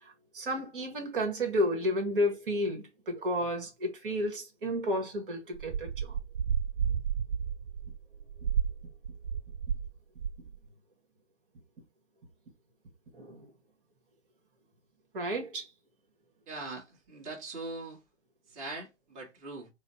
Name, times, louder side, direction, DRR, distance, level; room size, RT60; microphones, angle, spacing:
voice 1, 0.0-6.2 13.1-13.5 15.1-15.7, equal, 50° right, 1.2 m, -32 dB
sound 1, 5.6-9.9 10.2-10.6, right 7 dB, 90° right, 0.5 m, -32 dB
voice 2, 16.5-18.0 18.5-19.7, right 3 dB, 20° right, 1.2 m, -41 dB
4.1 x 2.0 x 4.1 m
hypercardioid pair, 135°, 35 cm